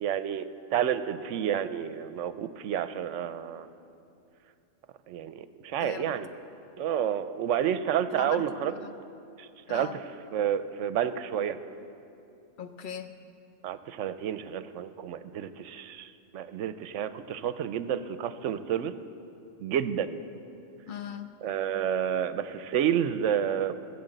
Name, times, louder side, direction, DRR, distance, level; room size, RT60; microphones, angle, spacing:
voice 1, 0.0-3.7 5.1-6.3 6.8-8.7 9.4-9.9 10.3-11.6 13.6-18.9 19.6-20.2 21.4-23.7, right 9 dB, 75° right, 12 dB, 0.9 m, -30 dB
voice 2, 8.1-8.9 9.7-10.0 12.6-13.2 20.8-21.3, left 7 dB, 50° left, 8 dB, 0.7 m, -39 dB
16.0 x 7.3 x 7.8 m, 2.6 s
omnidirectional pair, 1.3 m